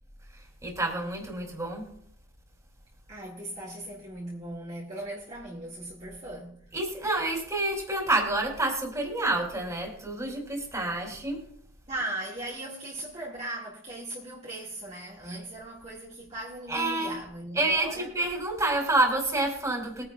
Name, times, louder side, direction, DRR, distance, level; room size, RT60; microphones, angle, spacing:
voice 1, 0.3-1.9 6.7-11.4 16.7-17.2 17.5-20.0, right 2 dB, 15° right, 2.9 m, -28 dB
voice 2, 3.1-6.6 11.9-18.1, right 1 dB, 35° right, 1.9 m, -38 dB
21.5 x 9.9 x 2.3 m
head